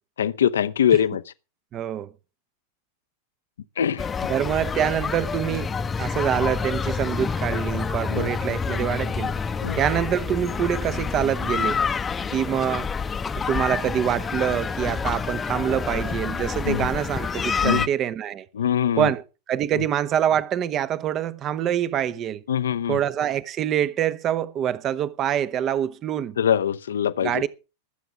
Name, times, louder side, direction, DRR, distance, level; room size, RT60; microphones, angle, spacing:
voice 1, 0.2-1.2 3.8-4.0 8.1-8.3 9.6-9.8 16.6-16.9 17.6-17.8 18.5-19.1 22.5-23.0 26.4-27.5, left 9 dB, 65° left, 0.7 m, -22 dB
voice 2, 1.7-2.1 4.3-5.7 6.0-9.3 9.7-11.9 12.3-12.9 13.5-18.4 19.0-22.4 22.9-26.4 27.2-27.5, right 10 dB, 30° right, 0.9 m, -25 dB
sound 1, 4.0-17.9, left 5 dB, 15° left, 0.8 m, -28 dB
20.0 x 8.0 x 5.0 m
figure-of-eight pair, 90°, 0 cm